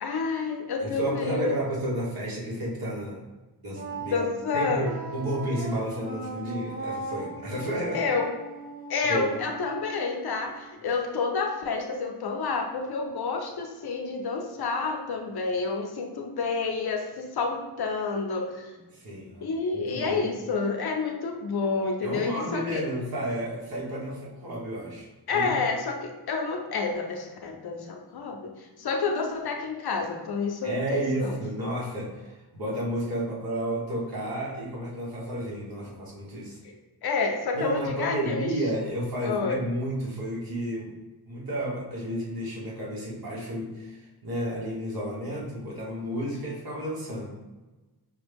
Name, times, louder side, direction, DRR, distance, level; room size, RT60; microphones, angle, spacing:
voice 1, 0.0-1.5 4.1-5.0 7.9-8.3 8.9-18.7 19.4-22.8 25.3-31.4 36.6-36.7 37.0-38.5 39.2-39.6, left 4 dB, 70° left, 3 dB, 0.7 m, -29 dB
voice 2, 0.8-3.2 3.6-4.2 4.5-8.0 9.1-9.3 10.9-11.0 18.9-19.5 19.9-20.3 22.0-25.5 30.6-36.6 37.5-40.9 41.3-47.3, right 1 dB, 65° right, -5 dB, 1.5 m, -32 dB
Wind instrument woodwind instrument, 3.7-10.7, right 2 dB, 20° right, 1.0 m, -39 dB
5.5 x 2.3 x 3.5 m, 1.2 s
wide cardioid pair, 150°, 39 cm